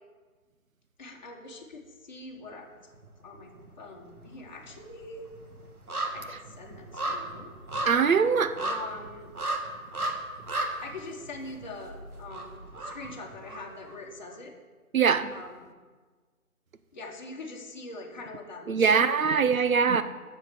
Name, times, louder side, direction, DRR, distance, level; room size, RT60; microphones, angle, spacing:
voice 1, 1.0-2.7 3.2-3.5 3.8-5.2 6.1-7.5 8.6-9.3 10.8-14.5 15.3-15.7 16.9-19.5, left 2 dB, 30° left, 1.4 m, -43 dB
sound 1, 2.9-3.7 4.0-14.0 14.3-14.4, right 2 dB, 85° right, 1.8 m, -36 dB
voice 2, 7.9-8.6 14.9-15.3 18.7-20.0, right 6 dB, 70° right, 0.8 m, -22 dB
7.4 x 6.6 x 6.4 m
figure-of-eight pair, 160°, 43 cm